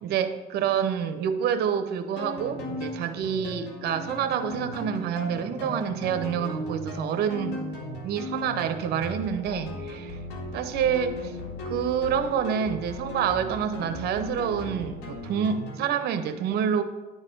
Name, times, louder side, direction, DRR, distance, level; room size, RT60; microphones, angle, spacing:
voice 1, 0.0-7.6 8.0-10.2 10.5-11.2 11.7-16.8, right 8 dB, 70° right, 9 dB, 0.7 m, -27 dB
sound 1, 2.2-15.9, left 1 dB, 85° left, 1.8 m, -37 dB
10.5 x 4.0 x 5.2 m, 1.2 s
cardioid pair, 110°, 17 cm